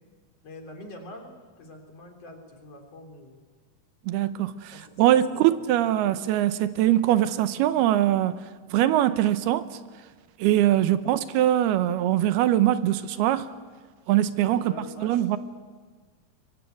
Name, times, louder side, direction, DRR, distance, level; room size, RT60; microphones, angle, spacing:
voice 1, 0.4-3.4 4.7-5.6 10.7-11.0 14.4-15.2, left 2 dB, 40° left, 3.8 m, -45 dB
voice 2, 4.1-8.4 8.7-9.8 10.4-13.5 14.1-15.4, right 12 dB, 85° right, 2.9 m, -22 dB
23.5 x 23.0 x 9.3 m
omnidirectional pair, 4.4 m